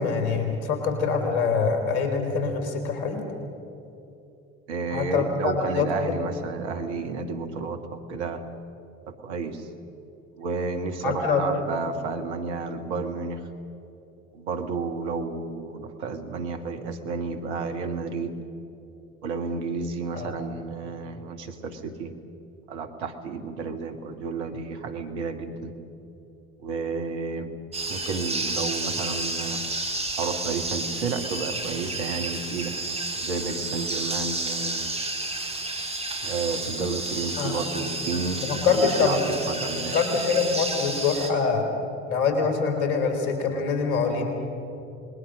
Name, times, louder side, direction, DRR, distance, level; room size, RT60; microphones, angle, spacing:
voice 1, 0.0-3.2 4.9-6.1 11.0-11.4 20.1-20.3 37.4-37.5 38.4-39.2 39.9-41.6 42.1-44.3, left 5 dB, 70° left, 5 dB, 4.1 m, -24 dB
voice 2, 4.7-8.4 9.1-9.7 10.4-13.4 14.3-18.4 19.2-22.1 22.7-25.8 26.6-27.5 27.9-29.6 30.2-32.7 33.2-34.9 36.2-40.0, right 4 dB, 85° right, 7 dB, 1.7 m, -31 dB
sound 1, 27.7-41.3, right 2 dB, 20° right, 4.3 m, -31 dB
27.0 x 21.0 x 6.3 m, 2.8 s
hypercardioid pair, 55°, 33 cm